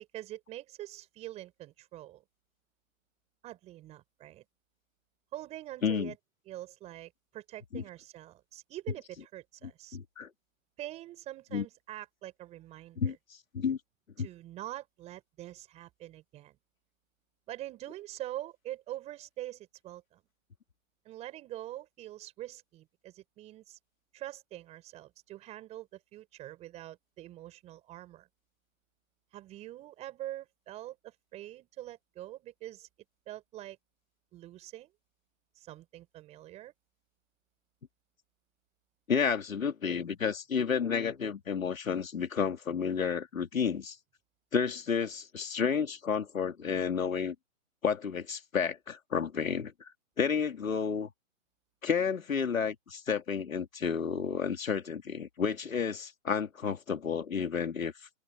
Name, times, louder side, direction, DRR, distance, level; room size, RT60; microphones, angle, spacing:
voice 1, 0.0-2.2 3.4-4.4 5.3-6.2 6.4-10.0 10.8-13.2 14.2-16.6 17.5-20.2 21.0-23.8 24.1-28.3 29.3-32.9 33.3-33.8 34.3-34.9 35.5-36.7, right 14 dB, 15° right, 5.0 m, -44 dB
voice 2, 5.8-6.1 7.7-7.8 9.9-10.3 11.5-11.6 13.0-13.1 13.5-13.8 14.2-14.3 39.1-44.0 44.5-47.3 47.8-49.9 50.2-51.1 51.8-57.9, left 6 dB, 80° left, 3.4 m, -31 dB
open air
hypercardioid pair, 155°, 40 cm